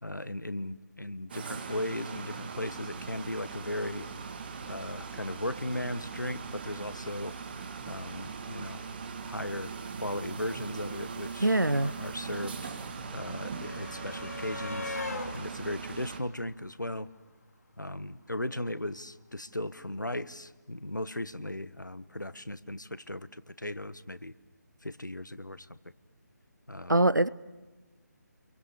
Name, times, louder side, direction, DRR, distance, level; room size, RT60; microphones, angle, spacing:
voice 1, 0.0-4.1 4.7-7.3 7.8-8.8 9.3-9.7 10.0-12.7 13.1-15.0 15.3-17.1 17.8-24.3 24.8-25.8 26.7-27.1, left 1 dB, 90° left, 1.2 m, -37 dB
sound 1, 1.3-16.2, right 5 dB, 35° right, 2.1 m, -40 dB
voice 2, 11.4-11.9 26.9-27.3, right 1 dB, 90° right, 0.8 m, -23 dB
sound 2, 11.9-17.3 18.5-18.6 18.9-19.0, left 2 dB, 60° left, 2.3 m, -42 dB
29.5 x 23.0 x 7.0 m
figure-of-eight pair, 150°, 10 cm